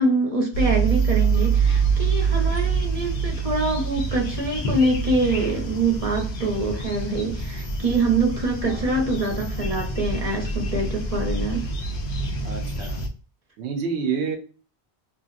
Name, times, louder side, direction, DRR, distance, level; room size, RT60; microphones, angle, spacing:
voice 1, 0.0-11.7, right 2 dB, 40° right, 0 dB, 0.8 m, -25 dB
sound 1, 0.5-13.1, right 4 dB, 55° left, 0.7 m, -26 dB
voice 2, 12.4-13.0 13.6-14.4, right 6 dB, 90° right, 4 dB, 0.9 m, -28 dB
2.9 x 2.5 x 2.4 m, 0.37 s
omnidirectional pair, 1.1 m